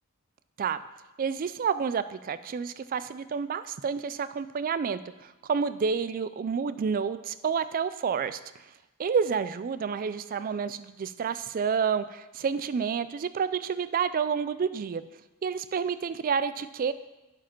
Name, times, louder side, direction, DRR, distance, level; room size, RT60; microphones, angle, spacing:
voice 1, 1.2-8.4 9.0-15.0 15.4-16.9, right 6 dB, 40° right, 14 dB, 0.3 m, -29 dB
11.0 x 4.9 x 4.4 m, 1.0 s
head